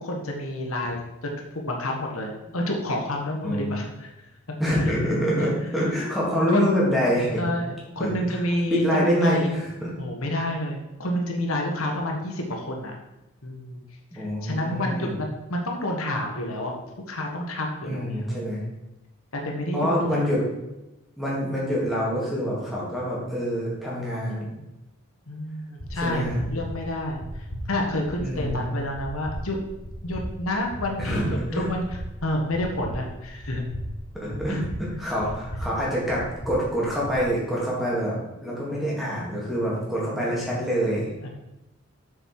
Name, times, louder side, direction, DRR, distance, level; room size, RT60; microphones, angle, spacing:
voice 1, 0.0-4.1 5.4-5.5 6.5-6.9 7.4-9.5 10.0-12.9 13.4-13.8 14.1-16.8 17.1-18.6 19.3-20.2 25.3-29.6 30.0-33.6 34.5-34.6 38.7-38.9 41.2-41.3, left 1 dB, 75° left, 1 dB, 1.3 m, -29 dB
voice 2, 3.4-3.7 4.6-7.4 8.0-8.4 8.7-9.9 14.1-15.1 17.8-18.6 19.7-20.5 21.2-24.6 26.0-26.4 28.2-28.7 31.0-31.7 34.1-38.2 38.4-41.1, equal, ahead, -6 dB, 2.6 m, -26 dB
sound 1, 25.8-37.2, equal, 35° left, 1.8 m, -37 dB
7.1 x 6.8 x 4.8 m, 0.96 s
head